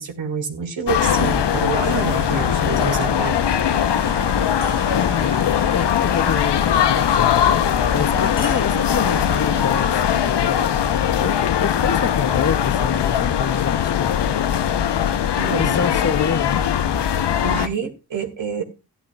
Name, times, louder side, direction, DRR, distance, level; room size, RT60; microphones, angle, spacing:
voice 1, 0.0-3.3 15.4-15.7 17.4-18.6, right 6 dB, 85° right, 1.9 m, -27 dB
sound 1, 0.9-17.7, left 9 dB, 65° left, 0.8 m, -20 dB
sound 2, 1.0-10.0, right 4 dB, 55° right, 1.3 m, -37 dB
sound 3, 1.2-2.0 4.6-5.4 8.4-9.3, left 3 dB, 90° left, 7.4 m, -41 dB
voice 2, 4.8-7.5 7.9-10.8 11.2-14.2 15.6-16.6, left 6 dB, 35° left, 0.6 m, -27 dB
14.5 x 11.0 x 2.3 m
cardioid pair, 40°, 44 cm